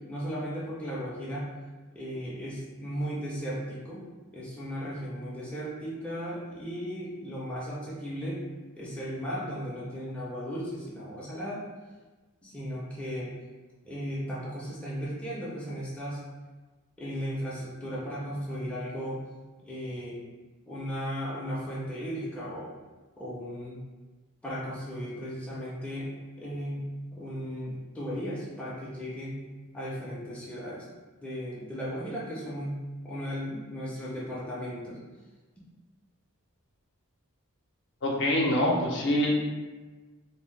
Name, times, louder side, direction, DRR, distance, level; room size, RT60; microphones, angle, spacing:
voice 1, 0.1-1.5 1.9-4.0 4.3-8.4 8.8-11.7 12.4-13.3 13.8-16.2 17.0-19.2 19.6-20.2 20.7-22.7 23.2-23.8 24.4-29.4 29.7-30.9 31.2-35.0, equal, 5° left, -7 dB, 0.4 m, -36 dB
voice 2, 38.0-39.3, left 1 dB, 55° left, -2 dB, 0.5 m, -25 dB
2.6 x 2.0 x 3.1 m, 1.3 s
head